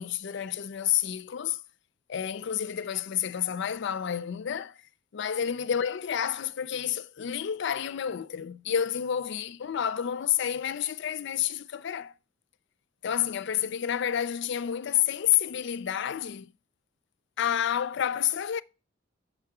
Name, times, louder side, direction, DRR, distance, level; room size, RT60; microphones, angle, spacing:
voice 1, 0.0-1.6 2.1-4.8 5.1-12.1 13.0-16.5 17.4-18.6, left 9 dB, 65° left, 0.4 m, -29 dB
7.1 x 4.7 x 4.7 m
head